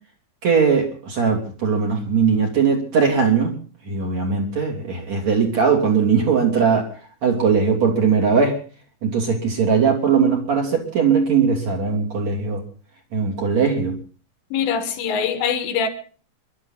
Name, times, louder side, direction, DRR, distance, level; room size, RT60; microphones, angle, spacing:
voice 1, 0.4-3.5 3.9-6.9 7.2-8.6 9.0-12.6 13.1-14.0, right 6 dB, 40° right, 3.8 m, -19 dB
voice 2, 14.5-15.9, left 7 dB, 75° left, 4.0 m, -23 dB
26.0 x 12.0 x 4.0 m
omnidirectional pair, 5.3 m